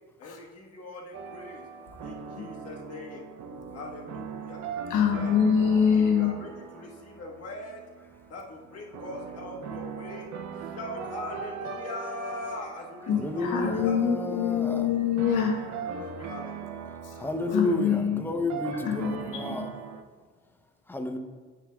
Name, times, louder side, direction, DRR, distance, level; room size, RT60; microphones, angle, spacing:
voice 1, 0.2-1.6 2.0-3.2 3.7-4.6 4.9-5.3 5.9-7.8 8.3-10.3 10.5-14.4 15.9-16.9 17.5-17.9, left 2 dB, 55° left, -3 dB, 1.4 m, -41 dB
sound 1, 1.1-20.0, right 6 dB, 70° right, 0.6 m, -40 dB
voice 2, 4.9-6.3 13.1-15.6 17.0-17.1 17.5-18.2 18.8-19.6, left 7 dB, 85° left, 2 dB, 1.0 m, -25 dB
voice 3, 13.2-14.9 17.2-19.7 20.9-21.2, left 2 dB, 5° left, 6 dB, 0.6 m, -31 dB
10.0 x 4.8 x 2.3 m, 1.5 s
cardioid pair, 90°, 30 cm